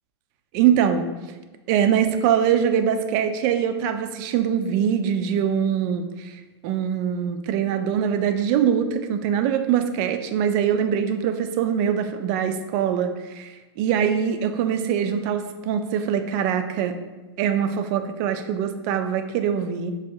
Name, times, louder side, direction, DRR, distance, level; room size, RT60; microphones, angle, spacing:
voice 1, 0.5-1.1 1.7-13.5 13.8-16.9 17.4-19.9, right 8 dB, 45° right, 7 dB, 0.4 m, -23 dB
5.9 x 2.0 x 2.7 m, 1.1 s
hypercardioid pair, 120°, 14 cm